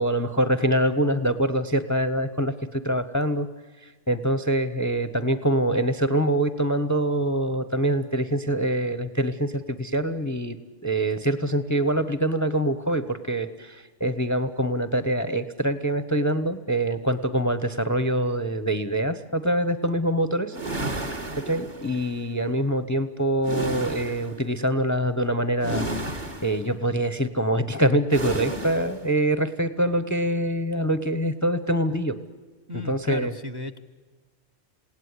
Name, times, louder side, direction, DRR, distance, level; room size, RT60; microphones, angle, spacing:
voice 1, 0.0-3.5 3.8-10.6 10.8-20.6 21.4-32.2 32.7-33.3, right 1 dB, 15° left, 12 dB, 0.9 m, -25 dB
sound 1, 20.5-22.1 23.4-24.4 25.6-26.7 28.1-29.0, right 1 dB, 40° right, 2.0 m, -32 dB
voice 2, 32.7-33.8, left 1 dB, 20° right, 12 dB, 0.9 m, -34 dB
28.0 x 17.5 x 9.7 m, 1.4 s
omnidirectional pair, 1.2 m